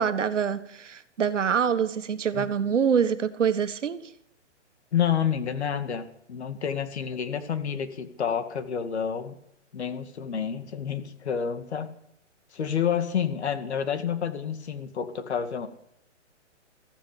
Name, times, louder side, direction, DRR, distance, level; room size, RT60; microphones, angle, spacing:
voice 1, 0.0-4.0, right 7 dB, 75° right, 11 dB, 1.6 m, -25 dB
voice 2, 4.9-9.4 9.7-11.9 12.5-15.7, left 8 dB, 60° left, 9 dB, 2.2 m, -29 dB
15.5 x 14.5 x 5.2 m, 0.72 s
hypercardioid pair, 160°, 37 cm